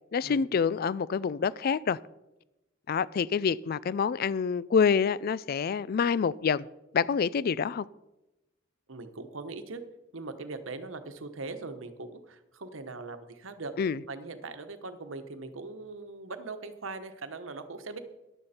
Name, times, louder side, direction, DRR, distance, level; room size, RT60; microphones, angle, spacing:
voice 1, 0.1-2.0 2.9-6.7 6.9-7.8 13.8-14.0, left 6 dB, 50° left, 0.4 m, -27 dB
voice 2, 8.9-9.8 10.1-13.7 14.1-18.0, right 3 dB, 80° right, 1.2 m, -40 dB
14.5 x 11.0 x 4.3 m
head